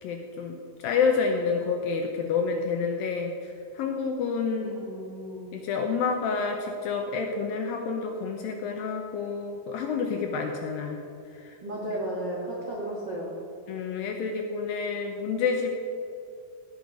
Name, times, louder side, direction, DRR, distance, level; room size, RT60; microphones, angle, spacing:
voice 1, 0.0-4.7 5.5-11.0 11.3-11.6 13.7-15.8, left 5 dB, 75° left, 3 dB, 2.2 m, -29 dB
voice 2, 4.5-5.5 11.6-13.3, right 1 dB, 55° right, -5 dB, 1.2 m, -34 dB
17.0 x 6.4 x 5.2 m, 2.6 s
omnidirectional pair, 4.8 m